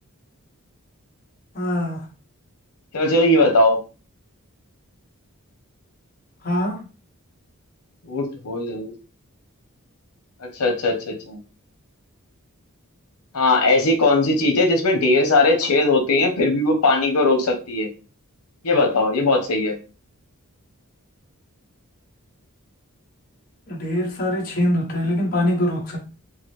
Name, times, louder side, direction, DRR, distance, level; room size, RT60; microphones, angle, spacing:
voice 1, 1.5-2.0 6.4-6.8 23.7-26.0, left 1 dB, 40° left, 1.0 m, -23 dB
voice 2, 2.9-3.8 8.1-8.9 10.6-11.4 13.3-17.9 18.6-19.8, left 2 dB, 90° left, 0.9 m, -19 dB
4.7 x 2.0 x 3.1 m
head